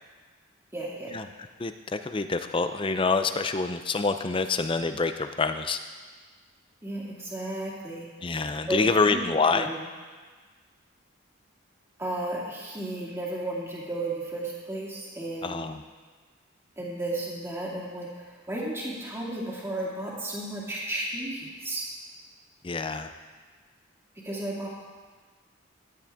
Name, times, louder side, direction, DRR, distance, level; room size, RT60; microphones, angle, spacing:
voice 1, 0.7-1.1 6.8-8.1 8.7-9.2 9.5-9.8 12.0-15.7 16.8-21.9 24.2-24.7, right 1 dB, 10° right, -5 dB, 2.2 m, -33 dB
voice 2, 1.6-5.8 8.2-9.7 15.4-15.8 22.6-23.1, left 4 dB, 25° left, 9 dB, 0.5 m, -26 dB
14.0 x 10.0 x 3.6 m, 1.4 s
head